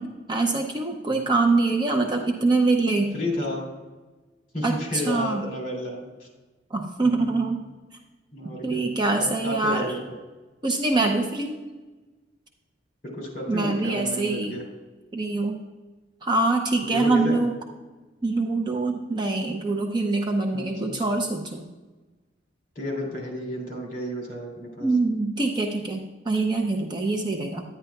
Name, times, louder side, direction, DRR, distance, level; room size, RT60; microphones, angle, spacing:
voice 1, 0.0-3.1 4.6-5.4 6.7-7.6 8.6-9.9 10.6-11.6 13.5-14.6 15.1-15.6 16.2-17.6 18.2-21.6 24.8-27.6, right 3 dB, 25° right, 1 dB, 0.6 m, -24 dB
voice 2, 3.1-3.6 4.5-6.3 7.0-7.4 8.3-10.1 13.0-14.6 16.8-17.4 20.5-21.0 22.7-24.9, left 1 dB, 45° left, -1 dB, 2.9 m, -32 dB
10.0 x 10.0 x 2.3 m, 1.2 s
head